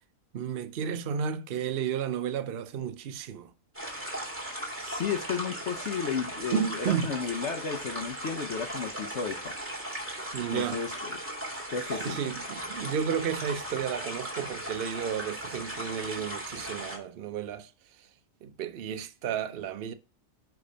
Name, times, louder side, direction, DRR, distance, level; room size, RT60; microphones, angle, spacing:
voice 1, 0.3-3.5 6.5-7.1 10.3-10.8 12.0-17.7 18.0-18.1 18.4-19.9, right 8 dB, 65° right, 0.5 m, -32 dB
sound 1, 3.7-17.0, right 1 dB, 10° right, 2.1 m, -37 dB
voice 2, 4.8-9.6 10.5-11.2 11.7-12.2, left 6 dB, 55° left, 1.0 m, -33 dB
10.0 x 3.5 x 5.5 m
omnidirectional pair, 1.6 m